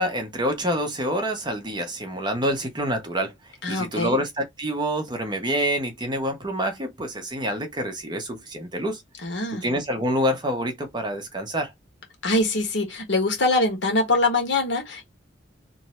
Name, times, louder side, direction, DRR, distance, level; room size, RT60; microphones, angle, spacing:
voice 1, 0.0-3.3 3.7-9.0 9.5-11.7, equal, 25° right, 0.8 m, -27 dB
voice 2, 3.6-4.2 9.2-9.6 12.2-15.1, left 2 dB, 65° left, 1.4 m, -23 dB
3.0 x 2.6 x 4.2 m
head